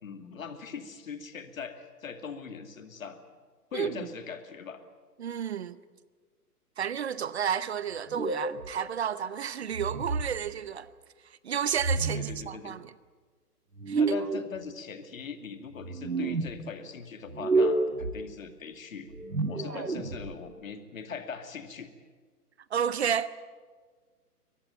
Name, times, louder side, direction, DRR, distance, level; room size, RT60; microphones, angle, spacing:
voice 1, 0.0-3.2 3.7-4.8 12.1-12.8 14.0-19.1 19.5-21.9, left 6 dB, 55° left, 2.5 m, -41 dB
voice 2, 3.7-4.1 5.2-5.8 6.8-10.9 11.4-12.9 13.9-14.2 19.7-19.9 22.7-23.3, right 8 dB, 45° right, 0.8 m, -31 dB
sound 1, 8.1-8.7 9.7-10.4 11.8-12.4 13.8-14.5 15.8-16.5 17.3-18.1 19.1-20.3, right 3 dB, 85° right, 1.9 m, -29 dB
23.0 x 19.0 x 9.3 m
figure-of-eight pair, 125°, 47 cm